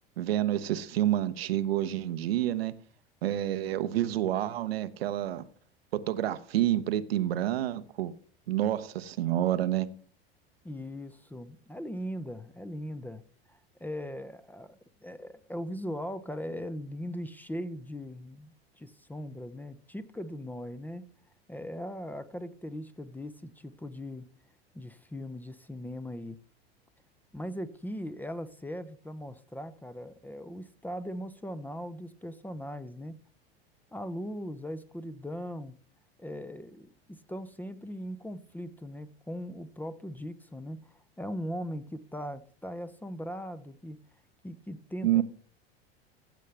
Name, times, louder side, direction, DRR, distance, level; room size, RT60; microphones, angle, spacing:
voice 1, 0.2-2.7 3.2-5.4 5.9-8.1 8.5-9.9 45.0-45.2, right 12 dB, 75° right, 0.9 m, -28 dB
voice 2, 10.6-13.2 13.5-21.1 21.5-24.3 24.7-26.4 27.3-33.2 33.9-35.8 36.2-44.0 44.4-45.2, equal, 5° left, 0.7 m, -39 dB
15.0 x 7.4 x 3.4 m
hypercardioid pair, 90°, 31 cm